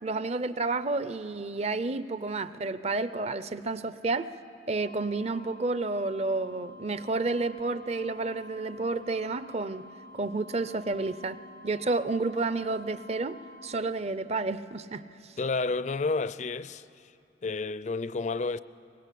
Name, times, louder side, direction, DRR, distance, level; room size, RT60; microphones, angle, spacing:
voice 1, 0.0-4.3 4.7-9.9 10.1-15.3, right 3 dB, 35° right, 0.6 m, -31 dB
sound 1, 4.7-13.8, left 2 dB, 65° right, 1.5 m, -50 dB
voice 2, 15.4-16.8 17.4-18.6, left 3 dB, 40° left, 0.5 m, -30 dB
23.5 x 21.0 x 8.4 m
head